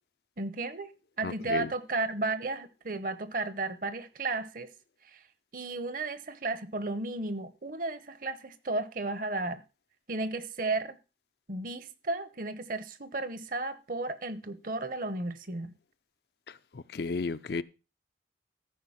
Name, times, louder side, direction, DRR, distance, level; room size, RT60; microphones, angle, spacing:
voice 1, 0.4-4.7 5.0-5.2 5.5-9.6 10.1-11.0 11.5-15.7, right 2 dB, 45° right, 0.9 m, -34 dB
voice 2, 1.2-1.7 16.9-17.6, left 4 dB, 60° left, 0.5 m, -32 dB
14.0 x 5.2 x 5.6 m
head